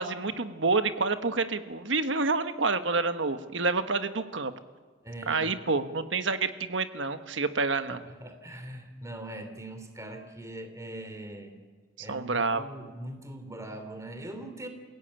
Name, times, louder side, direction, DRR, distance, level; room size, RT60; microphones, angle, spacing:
voice 1, 0.0-4.5 5.3-8.0 12.0-12.6, right 3 dB, 70° right, 9 dB, 1.4 m, -28 dB
voice 2, 5.0-5.5 7.9-11.5 12.0-14.7, right 1 dB, 15° right, 7 dB, 2.9 m, -41 dB
28.5 x 17.0 x 8.9 m, 1.5 s
head